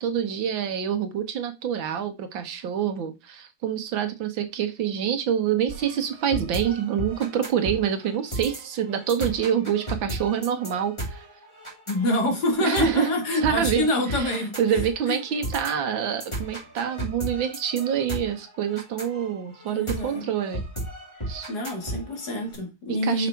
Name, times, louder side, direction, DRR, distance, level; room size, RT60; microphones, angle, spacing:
voice 1, 0.0-11.3 12.6-20.6 21.3-21.5 22.9-23.3, right 8 dB, 80° right, 1.8 m, -26 dB
sound 1, 5.7-22.6, right 1 dB, 15° left, 3.6 m, -35 dB
voice 2, 11.9-14.8 15.1-15.2 19.7-20.3 21.5-23.3, left 1 dB, 55° left, 2.6 m, -26 dB
6.1 x 5.7 x 4.6 m
omnidirectional pair, 2.1 m